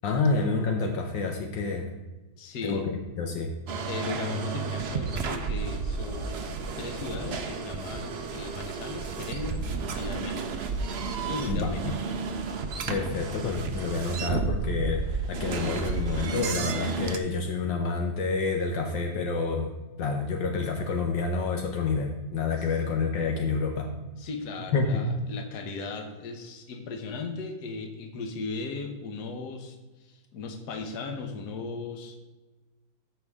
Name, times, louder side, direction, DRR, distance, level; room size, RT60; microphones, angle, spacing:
voice 1, 0.0-1.9 2.6-3.5 11.5-11.7 12.9-19.7 20.0-23.9 24.7-25.1, left 4 dB, 75° left, 3 dB, 1.6 m, -28 dB
voice 2, 2.4-2.9 3.9-10.5 11.2-12.0 22.6-22.7 24.2-32.2, left 4 dB, 60° left, 5 dB, 1.6 m, -37 dB
sound 1, 3.7-17.2, right 4 dB, 65° right, 0.6 m, -32 dB
14.0 x 5.6 x 3.6 m, 1.2 s
omnidirectional pair, 2.1 m